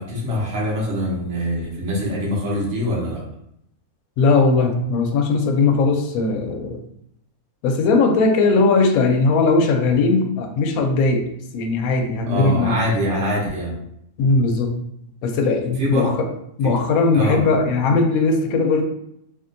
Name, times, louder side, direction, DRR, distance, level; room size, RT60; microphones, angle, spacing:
voice 1, 0.0-3.2 12.3-13.8 15.8-16.2 16.6-16.7 17.1-17.4, equal, 55° right, -3 dB, 1.1 m, -24 dB
voice 2, 4.2-6.8 7.6-11.3 11.5-12.7 14.2-14.7 15.2-16.3 16.6-18.9, left 3 dB, 75° left, 4 dB, 1.0 m, -18 dB
3.5 x 2.3 x 2.6 m, 0.74 s
omnidirectional pair, 1.6 m